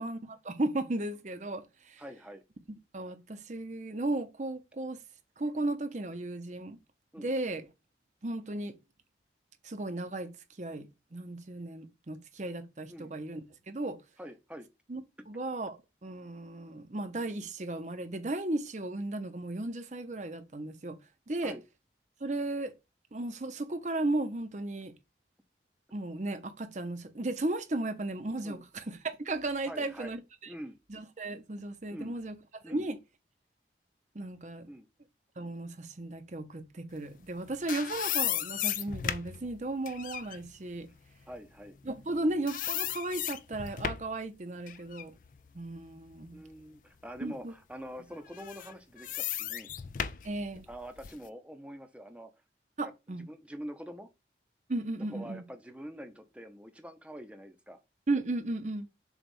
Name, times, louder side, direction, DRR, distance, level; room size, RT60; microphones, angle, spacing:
voice 1, 0.0-2.0 2.9-5.0 5.4-6.8 7.2-7.7 8.2-8.7 9.6-14.0 14.9-15.0 15.3-21.0 21.3-21.6 22.2-22.7 23.1-24.9 25.9-30.2 30.9-32.4 32.7-33.0 34.1-34.7 35.4-40.9 41.9-45.1 45.5-46.4 47.2-47.5 50.2-50.7 52.8-53.2 54.7-55.4 58.1-58.9, right 2 dB, 40° right, 0.8 m, -35 dB
voice 2, 2.0-2.4 7.1-7.3 12.9-13.1 14.2-14.7 21.4-21.6 28.4-28.6 29.7-30.1 30.4-30.8 31.9-32.1 32.6-32.8 34.7-34.9 41.3-41.8 46.3-49.7 50.7-52.3 52.8-54.1 55.1-57.8, equal, 5° right, 0.7 m, -45 dB
Puerta Chirriando, 37.2-42.2 42.5-44.2 44.7-46.6 47.1-47.2 48.3-51.3, left 10 dB, 45° left, 0.4 m, -36 dB
7.2 x 2.4 x 5.4 m
head